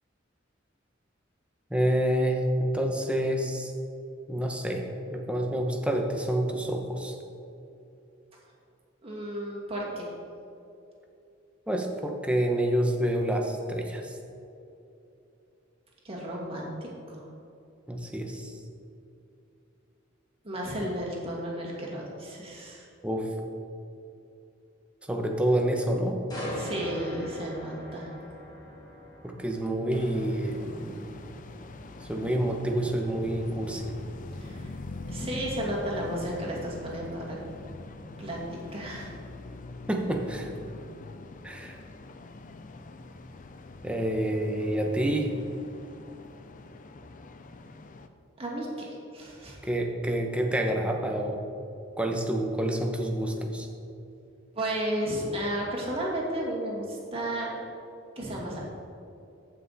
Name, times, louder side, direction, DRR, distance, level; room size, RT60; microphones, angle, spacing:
voice 1, 1.7-3.7 4.3-7.2 11.7-14.1 17.9-18.5 23.0-23.3 25.1-26.2 29.2-31.0 32.1-33.9 39.9-40.5 41.4-41.8 43.8-45.3 49.6-51.4 52.0-53.7, right 1 dB, 5° right, 2 dB, 0.9 m, -28 dB
voice 2, 9.0-10.1 16.0-17.2 20.4-22.9 26.6-28.1 34.3-34.7 35.1-37.4 38.2-39.1 48.4-49.6 54.5-57.6 58.2-58.7, right 1 dB, 30° right, -4 dB, 2.2 m, -33 dB
sound 1, 26.3-40.1 40.6-40.8, equal, 20° left, 2.5 m, -44 dB
sound 2, 29.9-48.1, left 2 dB, 45° left, 0.5 m, -43 dB
14.5 x 5.9 x 4.2 m, 2.7 s
head